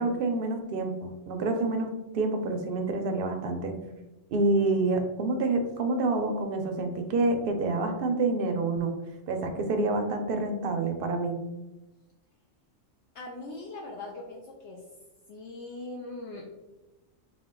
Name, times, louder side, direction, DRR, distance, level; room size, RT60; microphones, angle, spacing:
voice 1, 0.0-3.7 4.3-8.9 9.3-11.4, right 3 dB, 65° right, 5 dB, 0.6 m, -28 dB
voice 2, 13.1-14.8 15.3-16.5, left 2 dB, 70° left, -1 dB, 0.8 m, -40 dB
4.2 x 2.2 x 3.6 m, 1.0 s
omnidirectional pair, 1.3 m